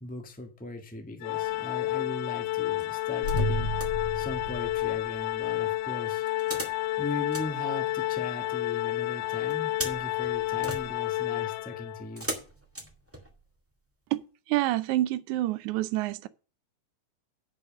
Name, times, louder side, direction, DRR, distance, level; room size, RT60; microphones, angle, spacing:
voice 1, 0.0-3.7 4.1-6.5 7.0-12.3, left 2 dB, 10° left, 0.3 m, -39 dB
Organ, 1.2-12.1, left 16 dB, 80° left, 1.9 m, -30 dB
sound 1, 1.4-1.9 2.8-4.0 6.3-8.4 9.5-13.6 14.1-14.2, right 1 dB, 10° right, 0.7 m, -41 dB
sound 2, 3.2-5.5, equal, 40° left, 1.9 m, -32 dB
voice 2, 14.5-16.3, right 15 dB, 75° right, 1.9 m, -27 dB
9.7 x 5.4 x 6.5 m
omnidirectional pair, 3.9 m